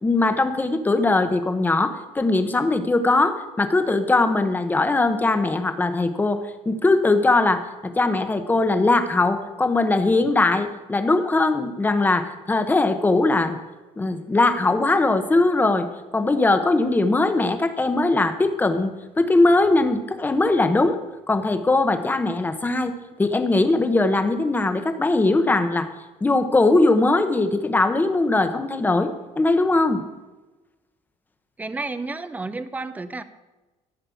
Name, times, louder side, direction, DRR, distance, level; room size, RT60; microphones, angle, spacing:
voice 1, 0.0-6.4 6.7-13.6 14.0-15.9 16.1-21.0 21.3-25.9 26.2-29.1 29.4-30.0, left 2 dB, 15° left, 9 dB, 1.0 m, -20 dB
voice 2, 31.6-33.2, right 3 dB, 10° right, 12 dB, 0.6 m, -31 dB
14.0 x 5.4 x 8.4 m, 1.2 s
cardioid pair, 145°, 13 cm